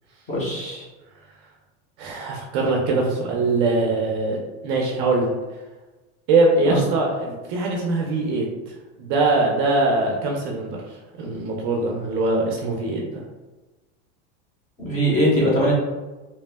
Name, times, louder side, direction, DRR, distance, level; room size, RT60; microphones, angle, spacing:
voice 1, 0.3-0.8 6.7-6.8 14.8-15.7, equal, 20° left, -5 dB, 0.7 m, -21 dB
voice 2, 2.0-5.3 6.3-8.4 9.0-10.8 11.2-13.2, right 3 dB, 40° right, -1 dB, 0.4 m, -22 dB
2.8 x 2.1 x 3.3 m, 1.2 s
supercardioid pair, 160°, 36 cm